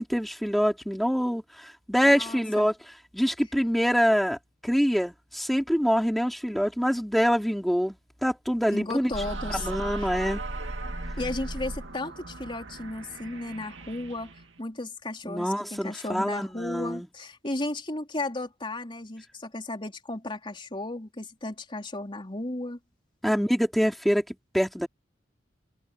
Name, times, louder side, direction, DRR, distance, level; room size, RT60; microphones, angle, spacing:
voice 1, 0.0-2.7 3.1-4.4 4.6-8.0 8.2-9.1 9.6-10.4 15.2-17.1 23.2-24.2 24.5-24.9, equal, ahead, 4.2 m, -25 dB
voice 2, 2.0-2.7 8.7-9.7 9.9-10.1 11.2-22.8, left 2 dB, 25° left, 3.9 m, -34 dB
sound 1, 9.1-14.6, right 2 dB, 75° right, 2.3 m, -37 dB
open air
head